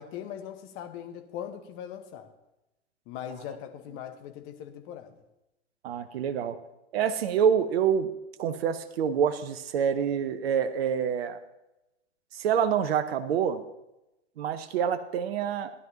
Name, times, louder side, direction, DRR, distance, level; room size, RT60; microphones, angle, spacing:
voice 1, 0.0-2.3 3.1-5.1, left 9 dB, 35° left, 1.2 m, -40 dB
voice 2, 5.8-6.6 6.9-8.1 8.4-11.4 12.3-13.6 14.4-15.7, right 8 dB, 55° right, 0.9 m, -26 dB
16.0 x 11.0 x 2.9 m
figure-of-eight pair, 110°, 37 cm